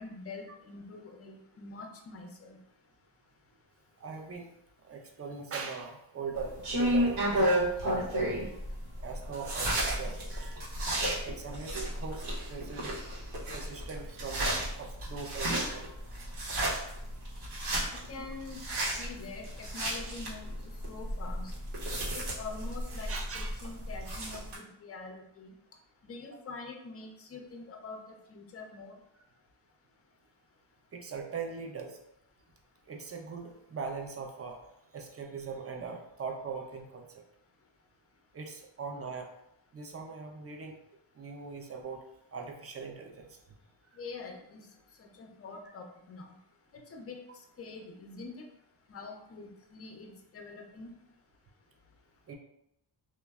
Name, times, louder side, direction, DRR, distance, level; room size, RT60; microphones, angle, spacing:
voice 1, 0.0-2.6 17.9-18.6 18.9-21.5 22.1-25.5 26.0-28.9 44.0-44.7 45.0-46.3 46.9-47.2 47.6-48.3 48.9-50.9, left 3 dB, 30° left, 3 dB, 0.4 m, -45 dB
voice 2, 4.0-4.5 4.8-7.3 7.8-8.1 9.0-10.6 11.2-12.2 12.5-13.0 13.5-16.0 18.7-18.8 23.1-23.5 30.9-32.0 32.9-34.6 34.9-37.1 38.3-39.3 39.7-40.8 41.2-42.0 42.3-43.3 52.3-52.4, right 5 dB, 30° right, 2 dB, 0.4 m, -40 dB
sound 1, 6.3-24.6, right 1 dB, 80° right, 0.9 m, -33 dB
3.1 x 2.1 x 2.3 m, 0.79 s
cardioid pair, 80°, 49 cm